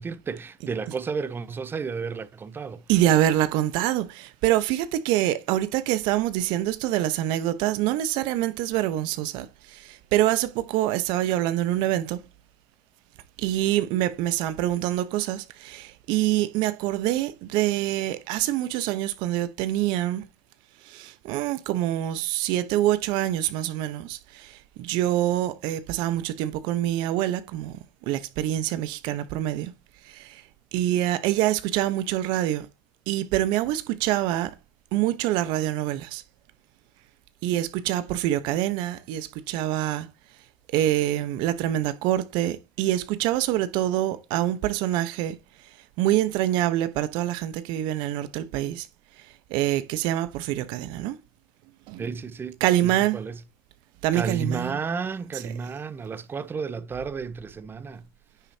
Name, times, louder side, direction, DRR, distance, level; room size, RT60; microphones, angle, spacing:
voice 1, 0.0-2.8 52.0-53.4 54.1-58.1, right 5 dB, 25° right, 1.0 m, -32 dB
voice 2, 2.9-12.2 13.4-20.2 20.8-27.8 28.1-29.7 30.0-30.4 30.7-32.7 33.1-34.5 34.9-36.2 37.4-40.1 40.7-45.4 46.0-48.9 49.5-51.2 51.9-52.2 52.6-53.2 54.0-54.8 55.3-55.6, right 13 dB, 65° right, 1.1 m, -25 dB
9.8 x 7.1 x 2.9 m
hypercardioid pair, 85°, 8 cm